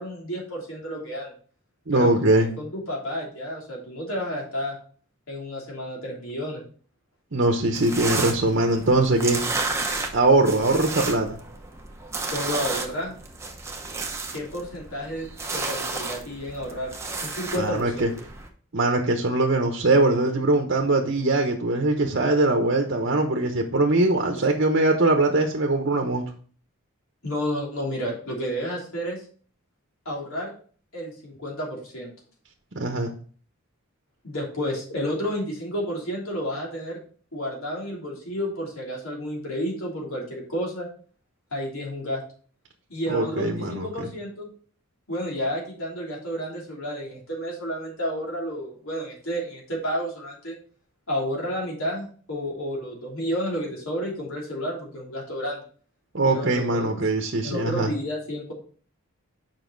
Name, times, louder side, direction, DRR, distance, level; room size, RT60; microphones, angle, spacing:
voice 1, 0.0-1.3 1.9-4.8 5.3-6.6 12.3-13.1 14.3-16.9 17.2-18.1 27.2-29.2 30.0-30.5 30.9-32.1 34.2-37.0 37.3-40.9 41.5-42.2 42.9-44.5 45.1-50.5 51.1-55.6 56.3-56.9 57.4-58.5, equal, 70° left, -3 dB, 3.2 m, -31 dB
voice 2, 1.9-2.5 7.3-9.4 10.1-11.4 17.6-18.1 18.7-26.3 32.7-33.1 43.1-44.1 56.1-57.9, right 2 dB, 55° right, 3 dB, 0.9 m, -22 dB
sound 1, 7.7-18.5, right 3 dB, 10° right, 0.8 m, -32 dB
7.3 x 5.4 x 3.9 m, 0.43 s
head